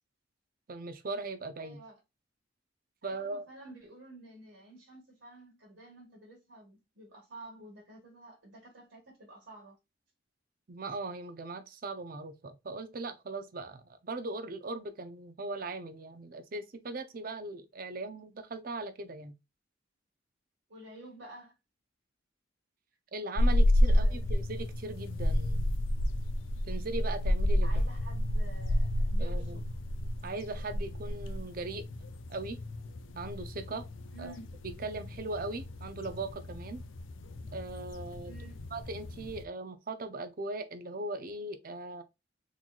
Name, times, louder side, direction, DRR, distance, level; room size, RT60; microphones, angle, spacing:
voice 1, 0.7-1.8 3.0-3.4 10.7-19.3 23.1-25.6 26.7-27.7 29.2-29.6 30.2-31.8 32.3-32.6 33.2-33.9 34.2-34.3 34.8-36.8 37.5-38.3 38.7-42.0, right 2 dB, 50° right, 0.6 m, -39 dB
voice 2, 1.6-2.0 3.0-9.8 20.7-21.5 23.8-24.3 27.6-29.6 34.1-34.6 38.2-38.6, right 2 dB, 75° right, 1.6 m, -51 dB
sound 1, 23.4-39.5, left 1 dB, 90° left, 0.5 m, -31 dB
3.9 x 3.1 x 2.4 m
head